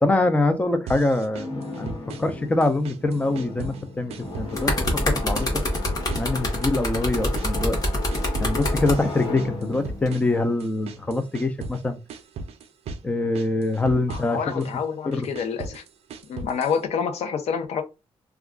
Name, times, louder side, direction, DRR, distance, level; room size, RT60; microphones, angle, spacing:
voice 1, 0.0-5.5 6.2-7.8 8.4-12.0 13.0-14.6 15.0-15.3, left 2 dB, 15° left, 0.3 m, -24 dB
sound 1, 0.9-2.4 2.6-3.8 4.1-5.0 5.4-6.8 7.1-11.8 12.1-13.1 13.3-14.7 15.1-16.8, right 4 dB, 75° right, 0.4 m, -38 dB
sound 2, 1.3-11.3, left 3 dB, 55° left, 1.2 m, -36 dB
sound 3, 4.3-9.0 9.8-10.1, left 1 dB, 35° left, 1.0 m, -26 dB
voice 2, 14.1-15.8 16.3-17.8, left 6 dB, 90° left, 0.6 m, -28 dB
2.3 x 2.2 x 3.5 m
wide cardioid pair, 175°, 11 cm